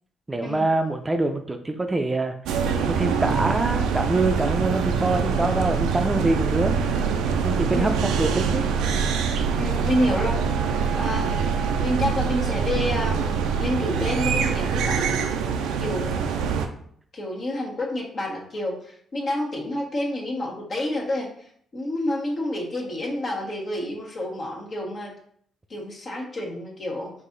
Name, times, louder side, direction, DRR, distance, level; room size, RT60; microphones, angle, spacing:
voice 1, 0.3-2.3 2.9-6.7 7.4-7.9 8.2-8.7, right 2 dB, 20° right, 5 dB, 0.5 m, -24 dB
sound 1, 2.5-16.7, right 6 dB, 80° right, 0.4 m, -24 dB
voice 2, 9.6-10.4 11.0-11.4 11.8-15.3 15.8-16.5 17.1-21.3 21.7-25.1 25.7-27.1, left 1 dB, 50° left, -2 dB, 1.4 m, -29 dB
4.6 x 2.7 x 3.9 m, 0.63 s
hypercardioid pair, 50°, 0 cm